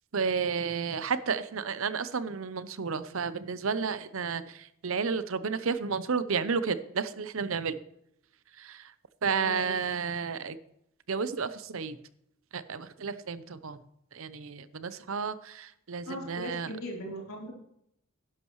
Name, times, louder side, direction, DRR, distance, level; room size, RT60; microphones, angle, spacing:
voice 1, 0.1-7.8 8.6-8.9 9.2-10.6 11.1-12.0 12.5-13.8 14.1-16.7, right 5 dB, 70° right, 14 dB, 0.7 m, -32 dB
voice 2, 9.3-9.8 16.1-17.5, equal, 75° left, -2 dB, 3.9 m, -39 dB
12.0 x 11.0 x 3.1 m, 0.75 s
head